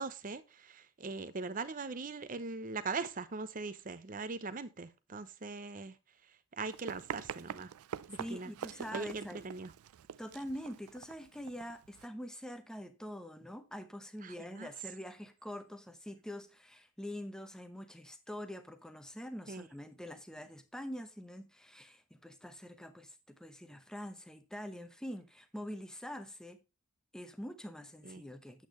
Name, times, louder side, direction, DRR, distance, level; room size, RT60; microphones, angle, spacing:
voice 1, 0.0-6.0 6.5-7.7 8.1-8.5 8.9-9.7 14.2-14.7 19.5-19.7 28.0-28.2, right 4 dB, 40° right, 0.6 m, -41 dB
Run, 6.6-12.1, right 8 dB, 85° right, 0.4 m, -45 dB
voice 2, 8.2-9.4 10.2-26.6 27.1-28.7, equal, 5° left, 0.8 m, -45 dB
8.6 x 8.2 x 3.0 m
head